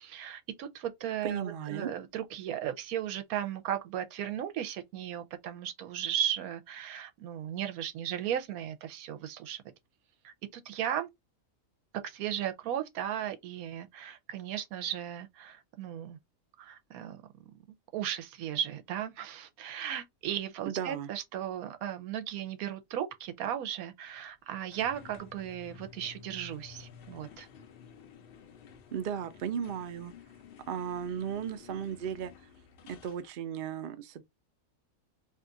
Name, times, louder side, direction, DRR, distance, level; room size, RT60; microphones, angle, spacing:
voice 1, 0.0-9.6 10.2-11.1 11.9-16.2 16.6-17.2 17.9-27.5, right 10 dB, 90° right, 1.1 m, -36 dB
voice 2, 1.2-1.9 20.7-21.1 28.9-30.1 30.7-32.3 32.9-34.2, right 8 dB, 60° right, 0.5 m, -35 dB
sound 1, 24.7-33.3, left 7 dB, 60° left, 0.6 m, -52 dB
2.8 x 2.3 x 3.7 m
omnidirectional pair, 1.5 m